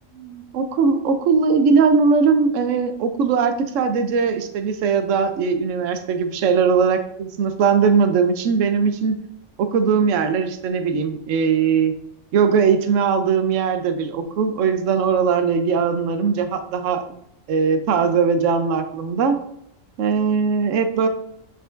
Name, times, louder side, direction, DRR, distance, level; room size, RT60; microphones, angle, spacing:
voice 1, 0.1-9.2 9.6-11.9 12.3-17.0 17.5-19.4 20.0-21.1, right 5 dB, 75° right, 8 dB, 1.0 m, -20 dB
7.5 x 5.2 x 2.5 m, 0.76 s
omnidirectional pair, 1.4 m